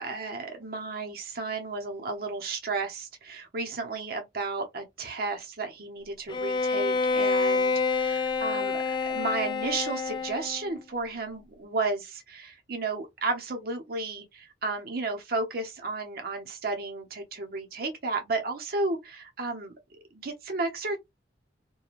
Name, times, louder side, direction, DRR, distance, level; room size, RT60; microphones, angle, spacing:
voice 1, 0.0-21.0, right 3 dB, 55° right, 0.7 m, -33 dB
Bowed string instrument, 6.3-10.7, left 4 dB, 25° left, 0.4 m, -27 dB
2.9 x 2.2 x 2.4 m
head